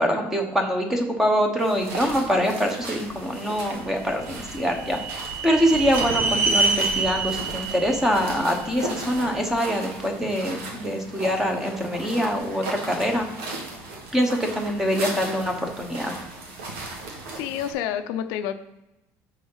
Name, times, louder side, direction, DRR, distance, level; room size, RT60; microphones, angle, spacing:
voice 1, 0.0-13.3 14.1-16.1, equal, 5° right, 3 dB, 1.1 m, -24 dB
sound 1, 1.6-17.7, right 2 dB, 85° right, 2.2 m, -36 dB
sound 2, 4.0-9.2, right 3 dB, 35° right, 1.0 m, -27 dB
voice 2, 17.3-18.6, left 10 dB, 70° left, 8 dB, 0.6 m, -29 dB
6.2 x 5.6 x 5.6 m, 0.94 s
cardioid pair, 170°, 7 cm